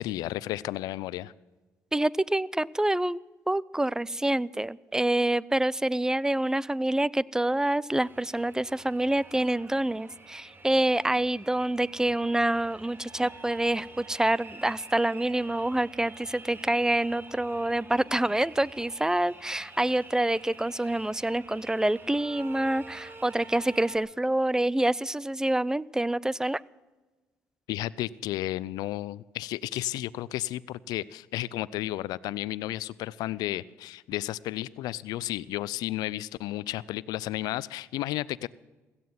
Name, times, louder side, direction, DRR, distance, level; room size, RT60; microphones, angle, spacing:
voice 1, 0.0-1.3 27.7-38.5, left 15 dB, 70° left, 21 dB, 0.5 m, -33 dB
voice 2, 1.9-3.2 3.5-26.6, right 1 dB, 10° right, 22 dB, 0.5 m, -27 dB
sound 1, 8.0-24.0, right 3 dB, 30° right, 2.5 m, -48 dB
17.0 x 14.0 x 6.0 m, 1.2 s
hypercardioid pair, 55°, 7 cm